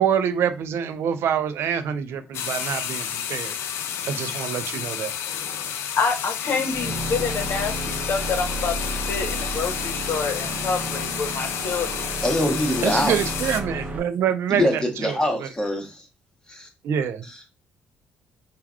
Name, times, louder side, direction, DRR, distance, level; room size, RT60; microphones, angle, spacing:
voice 1, 0.0-3.5 4.1-5.1 12.8-15.5 16.8-17.3, right 8 dB, 65° right, 0.3 m, -26 dB
sound 1, 2.3-13.6, left 8 dB, 75° left, 0.3 m, -30 dB
voice 2, 3.9-4.4 5.3-12.2, left 5 dB, 60° left, 0.8 m, -28 dB
sound 2, 6.7-14.0, right 1 dB, 35° right, 0.7 m, -32 dB
voice 3, 12.2-13.2 14.5-16.0 16.5-16.7, left 1 dB, 15° left, 0.9 m, -24 dB
3.3 x 2.3 x 2.3 m
supercardioid pair, 60°, 5 cm